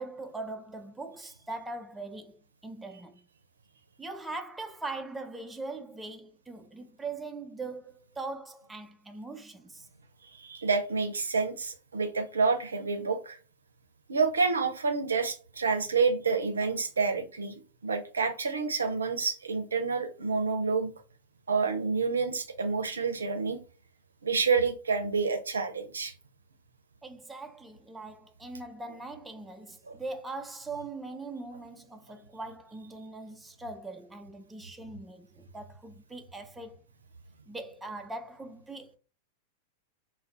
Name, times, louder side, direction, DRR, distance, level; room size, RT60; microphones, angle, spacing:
voice 1, 0.0-3.2 4.0-9.9 27.0-36.8 37.5-39.0, right 3 dB, 10° right, 0.3 m, -41 dB
voice 2, 10.4-13.4 14.1-20.9 21.5-23.6 24.2-26.1 29.9-30.0, right 4 dB, 75° right, 0.5 m, -28 dB
2.3 x 2.1 x 3.7 m
figure-of-eight pair, 90°, 0 cm